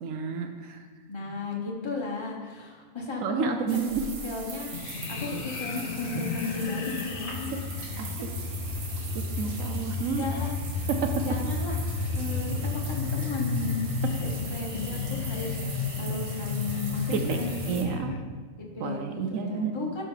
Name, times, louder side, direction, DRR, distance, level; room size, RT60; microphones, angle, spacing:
voice 1, 0.0-0.8 3.2-4.1 7.3-7.6 8.0-8.1 9.1-10.2 10.9-11.3 14.0-14.1 17.1-17.4 17.7-18.2 18.8-19.8, right 6 dB, 70° right, 6 dB, 1.0 m, -30 dB
voice 2, 1.1-3.6 4.2-4.7 5.1-7.5 10.1-10.9 11.2-11.8 12.1-13.9 14.2-18.1 18.6-20.0, left 3 dB, 20° left, -2 dB, 1.2 m, -35 dB
sound 1, 3.7-17.8, right 4 dB, 90° right, 1.7 m, -41 dB
sound 2, 4.7-18.2, left 4 dB, 55° left, 0.6 m, -32 dB
12.0 x 5.3 x 3.9 m, 1.6 s
omnidirectional pair, 1.5 m